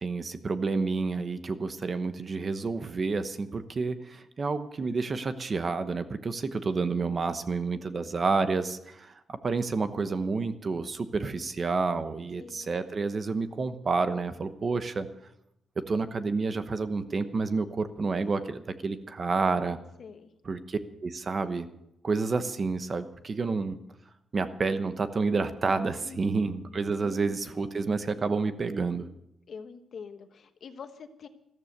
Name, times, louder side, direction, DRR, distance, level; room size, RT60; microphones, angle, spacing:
voice 1, 0.0-15.1 15.9-19.8 20.4-21.7 22.0-23.8 24.3-29.1, right 4 dB, 35° right, 10 dB, 1.0 m, -29 dB
voice 2, 12.4-12.8 20.0-20.3 26.0-26.5 29.5-31.3, left 6 dB, 50° left, 8 dB, 1.3 m, -45 dB
14.0 x 14.0 x 6.6 m, 0.79 s
cardioid pair, 140°, 0 cm